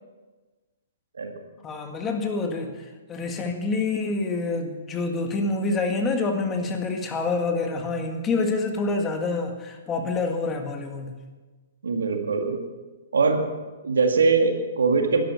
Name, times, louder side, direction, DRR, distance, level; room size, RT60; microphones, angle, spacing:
voice 1, 1.6-2.7 3.1-11.2, left 3 dB, 20° left, 4 dB, 1.8 m, -27 dB
voice 2, 11.8-12.6 13.1-13.5 13.8-15.2, right 4 dB, 85° right, 4 dB, 2.0 m, -22 dB
11.5 x 11.5 x 6.9 m, 1.3 s
hypercardioid pair, 130°, 0 cm